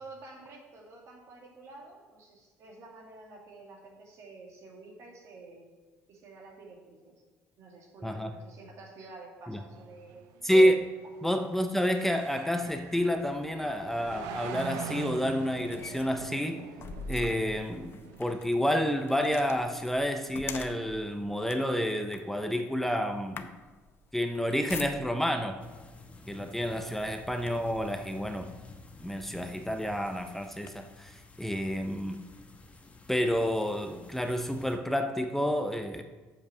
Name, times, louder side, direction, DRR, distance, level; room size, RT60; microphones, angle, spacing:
voice 1, 0.0-5.7 6.1-7.2 7.6-10.2 11.0-11.1, right 3 dB, 60° right, 0 dB, 2.3 m, -50 dB
sound 1, 9.8-20.4, right 8 dB, 85° right, 0.6 m, -44 dB
voice 2, 10.4-10.9 11.2-16.6 17.1-23.5 24.1-25.6 26.3-28.5 29.0-32.2 33.1-36.0, equal, 5° left, 6 dB, 0.6 m, -29 dB
sound 2, 12.6-25.4 26.2-26.5 26.8-27.9 28.5-28.6 29.0-30.7, left 3 dB, 45° left, 0.7 m, -46 dB
sound 3, 25.6-34.8, left 3 dB, 20° left, 1.1 m, -51 dB
7.1 x 5.4 x 7.1 m, 1.3 s
cardioid pair, 95°, 6 cm